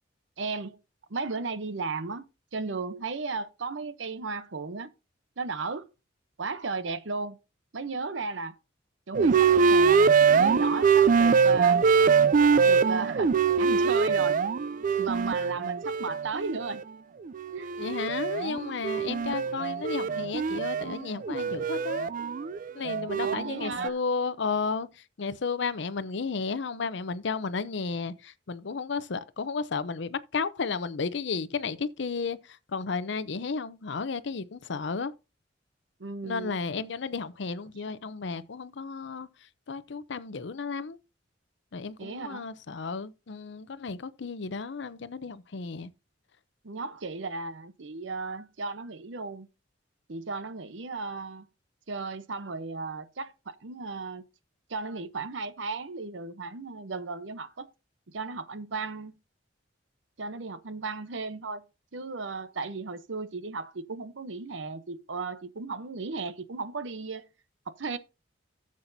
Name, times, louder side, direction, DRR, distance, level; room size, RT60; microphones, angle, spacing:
voice 1, 0.4-0.8 1.1-2.3 2.5-4.9 5.4-5.9 6.4-7.4 7.7-8.5 9.1-11.8 12.6-14.4 15.0-16.8 17.5-17.8 23.2-23.9 36.0-36.6 42.0-42.5 46.6-49.5 50.1-51.5 51.9-54.2 54.7-57.7 58.1-59.2 60.2-61.6 61.9-67.3 67.7-68.0, right 4 dB, 75° right, 0.8 m, -35 dB
sound 1, 9.1-16.8 17.3-23.9, right 5 dB, 45° right, 0.4 m, -23 dB
voice 2, 17.8-22.1 22.7-24.9 25.2-35.1 36.2-39.3 39.7-41.0 41.7-45.9, left 4 dB, 70° left, 0.6 m, -33 dB
13.0 x 7.5 x 2.7 m
head